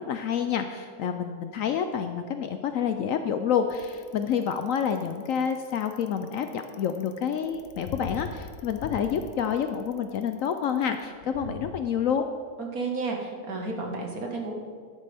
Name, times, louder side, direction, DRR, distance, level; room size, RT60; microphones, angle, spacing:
voice 1, 0.0-12.2, left 8 dB, 70° left, 7 dB, 0.9 m, -28 dB
Bicycle, 3.7-11.8, left 7 dB, 90° left, 1.2 m, -42 dB
voice 2, 12.6-14.6, right 3 dB, 70° right, 1 dB, 2.0 m, -32 dB
12.5 x 11.0 x 3.5 m, 2.1 s
omnidirectional pair, 1.6 m